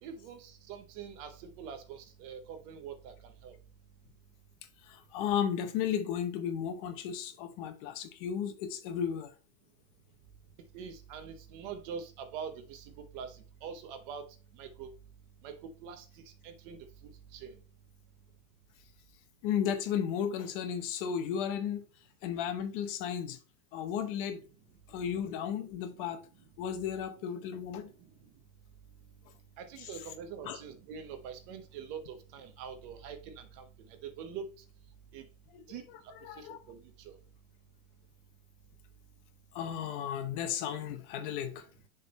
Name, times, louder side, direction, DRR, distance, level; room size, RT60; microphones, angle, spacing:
voice 1, 0.0-3.6 10.7-14.2 14.5-14.9 15.4-17.6 25.6-25.7 27.4-27.5 28.0-28.3 29.6-34.5 35.1-35.3 35.7-35.8 36.4-37.2, right 7 dB, 35° right, 0.8 m, -44 dB
voice 2, 4.9-9.3 19.4-21.8 22.2-23.4 23.7-24.4 24.9-26.2 26.6-27.9 30.4-30.6 35.5-35.6 36.2-36.6 39.5-41.7, left 8 dB, 40° left, 0.8 m, -34 dB
6.7 x 3.7 x 4.1 m
supercardioid pair, 160°, 42 cm